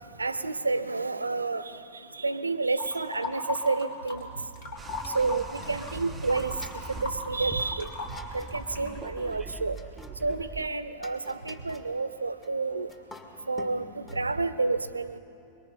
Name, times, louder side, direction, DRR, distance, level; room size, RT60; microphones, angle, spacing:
voice 1, 0.2-4.3 5.1-7.9 8.3-9.8 10.2-12.9 13.5-15.2, right 3 dB, 80° right, 14 dB, 0.8 m, -30 dB
sound 1, 2.8-4.3 4.5-9.0, left 3 dB, 55° left, 3.8 m, -38 dB
sound 2, 4.8-10.7, right 5 dB, 15° right, 0.7 m, -42 dB
sound 3, 5.8-14.2, left 2 dB, 20° left, 2.1 m, -51 dB
24.5 x 23.0 x 5.4 m, 2.7 s
figure-of-eight pair, 90°, 0 cm